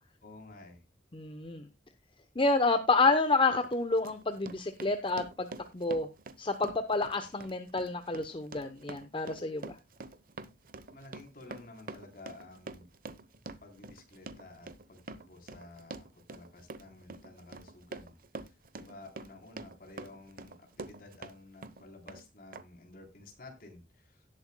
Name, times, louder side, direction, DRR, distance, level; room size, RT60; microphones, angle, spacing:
voice 1, 0.2-0.8 10.9-12.9 13.6-24.3, left 2 dB, 55° left, 3 dB, 3.6 m, -52 dB
voice 2, 1.1-1.7 2.4-5.5 5.7-6.1 6.4-9.8, left 3 dB, 30° left, 9 dB, 0.8 m, -29 dB
Run, 3.0-3.2 3.6-21.4 21.6-22.2 22.5-22.6, right 3 dB, 55° right, 0.8 m, -46 dB
17.5 x 7.9 x 2.2 m, 0.23 s
head